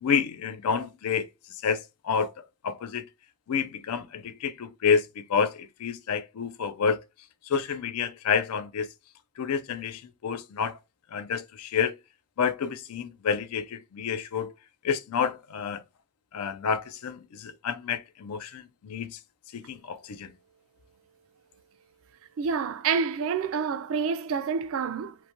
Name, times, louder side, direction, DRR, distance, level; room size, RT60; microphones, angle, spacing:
voice 1, 0.0-1.3 1.6-3.0 3.5-7.0 7.5-8.9 9.4-10.8 11.1-12.0 12.4-14.5 14.8-15.8 16.3-19.2 19.5-20.3, left 6 dB, 85° left, 0.4 m, -29 dB
voice 2, 22.4-25.2, right 6 dB, 65° right, 0.3 m, -28 dB
3.0 x 2.1 x 2.6 m
head